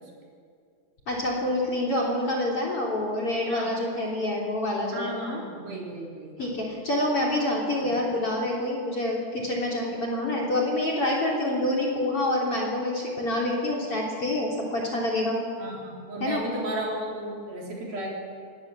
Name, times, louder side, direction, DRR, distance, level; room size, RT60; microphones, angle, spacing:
voice 1, 1.1-5.4 6.4-15.4 16.2-16.4, left 1 dB, 30° left, -1 dB, 3.8 m, -27 dB
voice 2, 4.9-6.5 7.8-7.9 15.6-18.1, right 1 dB, 50° right, -3 dB, 5.6 m, -34 dB
24.5 x 20.0 x 7.5 m, 2.2 s
omnidirectional pair, 5.4 m